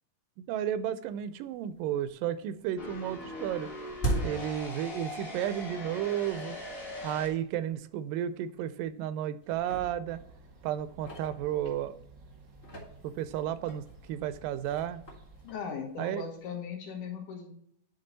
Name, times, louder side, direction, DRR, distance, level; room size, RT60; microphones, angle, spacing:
voice 1, 0.5-3.7 4.2-6.6 7.0-10.2 10.6-12.0 13.0-15.1 16.0-16.2, right 11 dB, 85° right, 14 dB, 2.2 m, -33 dB
sound 1, 1.2-1.3 1.7-2.3 2.5-5.5 5.8-5.9 6.6-6.7 7.2-7.3 7.7-7.8 8.5-9.1 9.4-12.0 12.5-16.4, right 2 dB, 35° left, 1.0 m, -40 dB
sound 2, 2.8-7.3, left 2 dB, 50° left, 0.6 m, -41 dB
sound 3, 10.1-15.6, right 4 dB, 60° right, 1.1 m, -54 dB
voice 2, 15.4-17.5, left 6 dB, 70° left, 1 dB, 2.7 m, -38 dB
9.7 x 3.8 x 3.9 m, 0.69 s
omnidirectional pair, 3.8 m